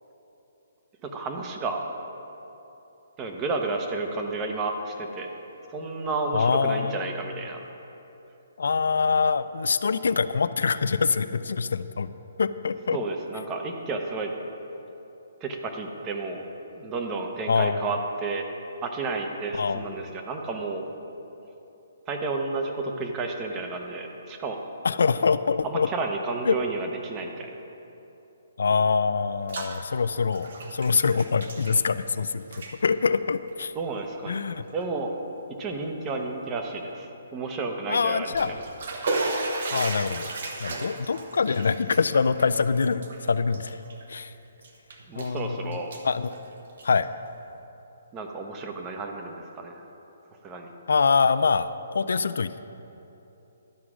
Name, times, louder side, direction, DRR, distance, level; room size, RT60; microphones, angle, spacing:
voice 1, 1.0-1.8 3.2-5.3 5.7-7.6 12.9-14.3 15.4-16.4 16.7-18.4 18.8-20.9 22.1-24.6 25.6-27.6 33.7-34.4 34.7-35.2 35.6-38.6 45.1-45.9 48.1-49.9 50.4-50.7, right 3 dB, 20° right, 3 dB, 0.8 m, -31 dB
voice 2, 6.3-7.1 8.6-12.1 12.4-13.0 17.5-17.9 19.6-20.0 24.8-25.9 26.4-26.6 28.6-32.4 32.8-33.7 34.3-34.6 37.9-38.6 39.7-40.3 40.6-43.8 44.1-44.3 45.2-46.3 46.8-47.1 50.9-52.6, left 5 dB, 80° left, 13 dB, 0.3 m, -24 dB
Bathtub (filling or washing), 29.2-29.8 30.1-32.2 32.4-32.7 33.5-33.6 34.3-34.4 34.8-34.9 38.1-44.2 44.6-45.4 45.7-47.0, right 2 dB, 60° right, 1.0 m, -34 dB
11.5 x 4.9 x 6.1 m, 3.0 s
hypercardioid pair, 160°, 0 cm